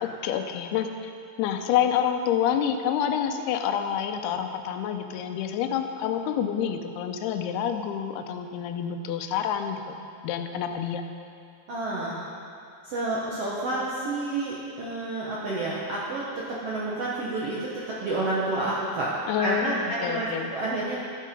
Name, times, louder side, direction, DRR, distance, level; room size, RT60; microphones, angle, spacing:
voice 1, 0.2-0.9 1.4-11.0 19.3-20.5, left 9 dB, 90° left, 6 dB, 2.6 m, -28 dB
voice 2, 11.7-12.2 12.8-19.1 19.4-21.0, right 2 dB, 70° right, -6 dB, 1.4 m, -29 dB
14.0 x 7.5 x 5.2 m, 2.4 s
omnidirectional pair, 4.5 m